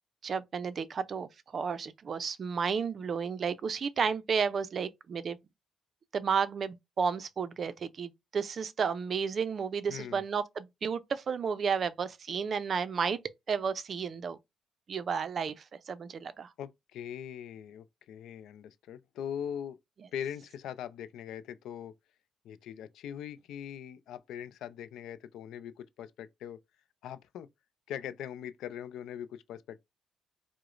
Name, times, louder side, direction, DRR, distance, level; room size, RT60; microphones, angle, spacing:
voice 1, 0.2-5.4 6.1-13.2 13.5-14.4 14.9-16.5, right 6 dB, 50° right, 0.4 m, -32 dB
voice 2, 9.9-10.2 16.6-19.8 20.1-21.9 22.4-26.6 27.0-27.5 27.9-29.8, left 9 dB, 80° left, 0.4 m, -41 dB
4.7 x 2.0 x 2.4 m
cardioid pair, 90°, 0 cm